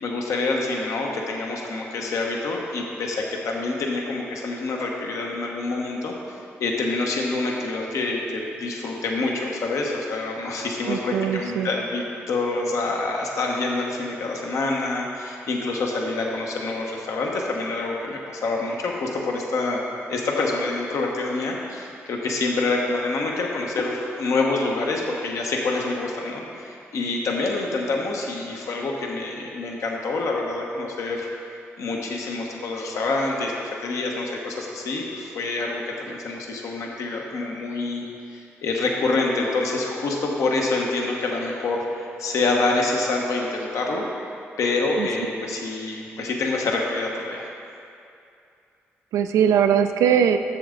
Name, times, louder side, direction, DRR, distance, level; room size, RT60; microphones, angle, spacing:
voice 1, 0.0-19.8 20.1-31.3 31.8-44.1 44.6-47.5, left 3 dB, 70° left, -1 dB, 1.0 m, -26 dB
voice 2, 10.9-11.7 45.0-45.1 49.1-50.4, right 8 dB, 80° right, 8 dB, 0.3 m, -20 dB
7.0 x 6.9 x 3.8 m, 2.5 s
supercardioid pair, 45°, 6 cm